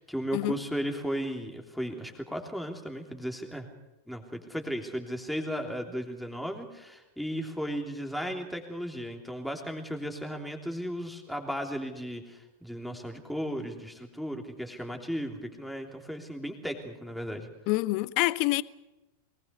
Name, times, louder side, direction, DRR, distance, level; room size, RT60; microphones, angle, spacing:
voice 1, 0.0-3.7 4.1-17.5, equal, ahead, 3.2 m, -35 dB
voice 2, 17.7-18.6, left 20 dB, 45° left, 0.7 m, -26 dB
23.0 x 20.0 x 6.9 m
figure-of-eight pair, 90°, 0 cm